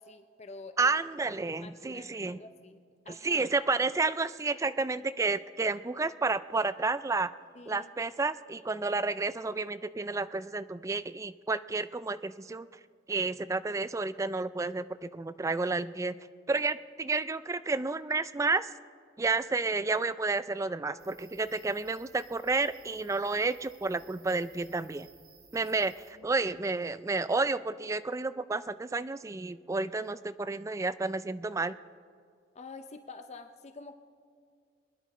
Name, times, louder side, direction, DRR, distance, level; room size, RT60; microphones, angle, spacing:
voice 1, 0.0-1.0 1.4-2.8 3.0-3.4 7.5-7.9 26.1-26.3 32.5-33.9, left 3 dB, 35° left, 8 dB, 0.6 m, -48 dB
voice 2, 0.8-2.4 3.1-7.3 7.7-12.7 13.1-16.1 16.5-18.7 19.2-25.1 25.5-31.7, right 3 dB, 15° right, 14 dB, 0.3 m, -31 dB
sound 1, 21.0-26.1, right 6 dB, 50° right, 1.9 m, -59 dB
24.0 x 10.5 x 4.2 m, 2.1 s
head